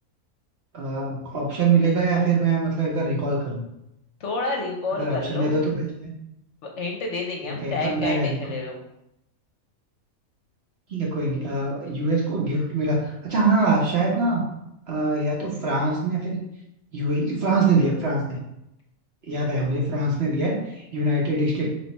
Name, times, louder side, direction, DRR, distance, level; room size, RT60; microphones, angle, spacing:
voice 1, 0.7-3.6 5.0-6.1 7.4-8.4 10.9-14.4 14.9-16.3 16.9-18.4 19.2-21.7, right 3 dB, 50° right, -3 dB, 1.1 m, -23 dB
voice 2, 4.2-5.5 6.6-8.8, left 3 dB, 60° left, 0 dB, 1.0 m, -29 dB
3.3 x 3.2 x 4.2 m, 0.83 s
omnidirectional pair, 1.5 m